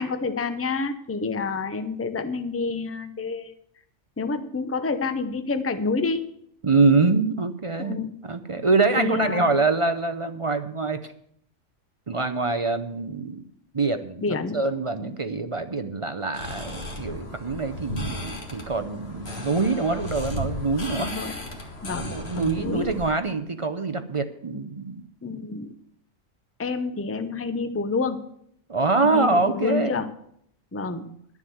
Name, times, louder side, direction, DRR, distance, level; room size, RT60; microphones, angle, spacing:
voice 1, 0.0-3.5 4.2-6.3 7.8-8.2 8.9-9.5 14.2-14.6 15.0-15.1 20.9-21.3 21.8-22.9 25.2-25.7 26.6-28.2 29.0-30.1 30.7-31.1, left 4 dB, 15° left, 9 dB, 0.6 m, -28 dB
voice 2, 6.6-11.0 12.1-13.5 13.7-21.1 22.0-25.0 28.7-29.9, right 3 dB, 35° right, 9 dB, 0.5 m, -25 dB
sound 1, 16.3-23.1, left 1 dB, 55° left, 2.1 m, -35 dB
11.0 x 7.3 x 7.8 m, 0.69 s
omnidirectional pair, 1.3 m